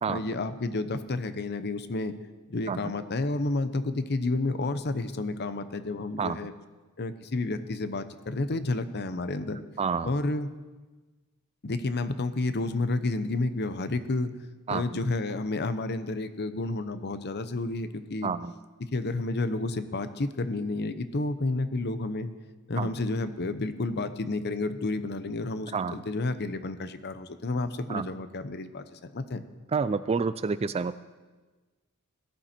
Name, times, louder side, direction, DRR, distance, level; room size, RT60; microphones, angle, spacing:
voice 1, 0.1-2.1 2.5-6.5 7.0-9.6 10.0-10.5 11.6-14.3 14.7-18.3 18.8-22.3 22.7-29.4, left 2 dB, 50° left, 11 dB, 0.8 m, -30 dB
voice 2, 9.8-10.1 14.7-15.0 18.2-18.5 22.8-22.9 25.7-26.0 27.9-28.1 29.7-31.0, right 5 dB, 25° right, 14 dB, 0.3 m, -29 dB
17.5 x 12.0 x 4.4 m, 1.3 s
head